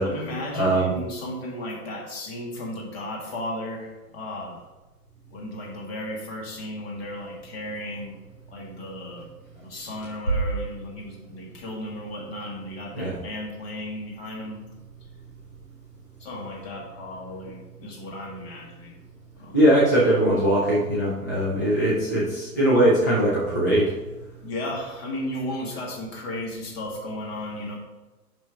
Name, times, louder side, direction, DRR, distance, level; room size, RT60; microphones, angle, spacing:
voice 1, 0.0-4.7 5.3-8.1 8.5-9.3 9.6-14.6 16.2-19.0 19.4-19.6 24.4-27.8, left 1 dB, 40° left, -1 dB, 2.0 m, -35 dB
voice 2, 0.5-0.9 12.9-13.1 19.5-23.9, right 1 dB, 15° left, -7 dB, 0.4 m, -20 dB
5.5 x 5.1 x 4.9 m, 1.1 s
figure-of-eight pair, 125°, 48 cm